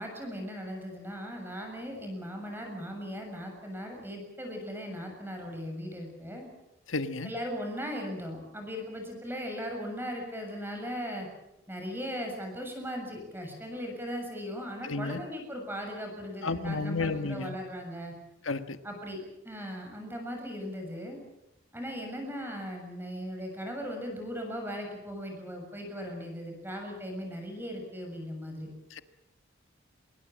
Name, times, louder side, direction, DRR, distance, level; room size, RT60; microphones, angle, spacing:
voice 1, 0.0-6.5 7.2-11.3 11.7-18.1 18.8-19.2 19.4-21.2 21.7-28.7, equal, 10° right, 3 dB, 7.1 m, -38 dB
voice 2, 6.9-7.3 14.8-15.2 16.4-17.6 18.4-18.8 28.9-29.0, left 3 dB, 80° left, 10 dB, 1.5 m, -32 dB
26.5 x 22.0 x 7.5 m, 0.88 s
head